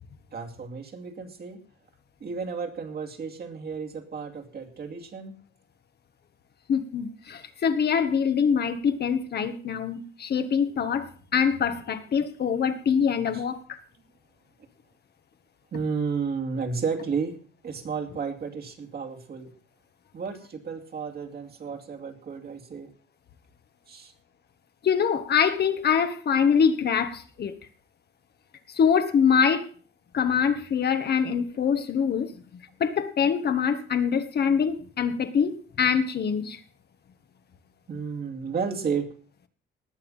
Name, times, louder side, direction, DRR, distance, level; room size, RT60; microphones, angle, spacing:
voice 1, 0.3-1.6 2.2-5.3 13.3-13.4 15.7-19.5 20.1-22.9 23.9-24.1 37.9-39.1, right 5 dB, 50° right, 2.7 m, -32 dB
voice 2, 6.7-13.8 24.8-27.5 28.7-29.7 30.1-32.3 32.8-36.6, left 7 dB, 55° left, 1.6 m, -24 dB
19.0 x 7.1 x 5.7 m
cardioid pair, 90°, 20 cm